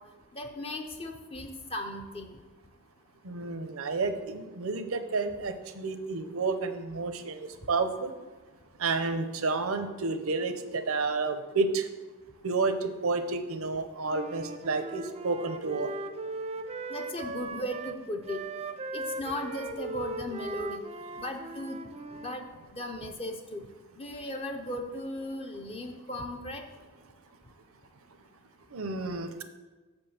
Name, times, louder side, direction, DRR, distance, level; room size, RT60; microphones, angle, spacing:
voice 1, 0.3-2.4 16.9-18.4 18.9-20.8 21.2-21.8 22.1-22.5 22.7-23.6 24.0-26.6, left 1 dB, 25° left, 3 dB, 0.6 m, -37 dB
voice 2, 3.2-8.1 8.8-11.9 12.4-15.9 28.7-29.4, right 3 dB, 70° right, 9 dB, 0.7 m, -30 dB
Wind instrument woodwind instrument, 14.0-22.4, right 3 dB, 30° right, 0.4 m, -39 dB
6.4 x 5.3 x 7.0 m, 1.3 s
head